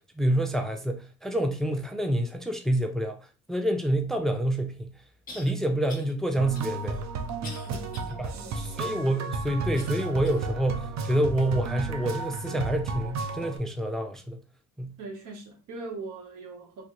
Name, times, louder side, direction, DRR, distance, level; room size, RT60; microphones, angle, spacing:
voice 1, 0.2-3.2 3.5-4.9 5.3-7.0 8.2-14.4 14.8-14.9, right 1 dB, ahead, 0.4 m, -27 dB
sound 1, 4.3-4.4 5.3-5.5 5.9-6.1 6.5-8.1 8.6-8.7 9.8-10.5 11.1-11.2 12.0-12.1, left 2 dB, 30° left, 1.0 m, -45 dB
sound 2, 6.4-13.6, right 3 dB, 65° right, 0.5 m, -33 dB
voice 2, 7.7-8.9 15.0-16.8, right 3 dB, 85° right, 0.9 m, -41 dB
3.2 x 2.4 x 2.9 m
cardioid pair, 90°, 30 cm